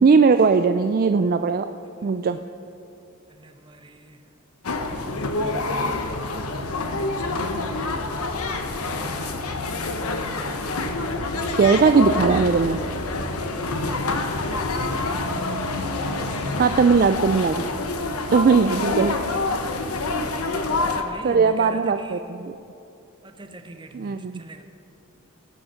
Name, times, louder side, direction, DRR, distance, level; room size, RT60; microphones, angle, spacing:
voice 1, 0.0-1.6 2.0-2.4 11.6-12.8 16.6-17.6 18.3-19.2 21.2-22.2 23.9-24.4, right 5 dB, 40° right, 9 dB, 0.3 m, -18 dB
voice 2, 3.3-4.3 8.8-9.8 13.9-14.8 15.8-17.0 20.8-22.6 23.2-24.6, right 1 dB, 20° right, 6 dB, 0.8 m, -43 dB
sound 1, 4.6-21.0, left 2 dB, 85° left, 1.0 m, -27 dB
18.0 x 8.0 x 5.8 m, 2.6 s
head